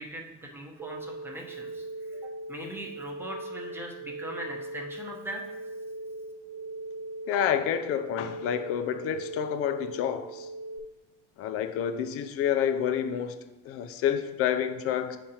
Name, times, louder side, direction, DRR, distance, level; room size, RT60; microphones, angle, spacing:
voice 1, 0.0-5.4, right 1 dB, 5° right, 0.9 m, -40 dB
sound 1, 0.8-10.8, right 2 dB, 25° right, 0.4 m, -40 dB
voice 2, 7.3-10.5 11.4-13.4 13.6-15.2, left 9 dB, 50° left, 0.5 m, -28 dB
7.3 x 5.1 x 2.9 m
supercardioid pair, 125°, 30 cm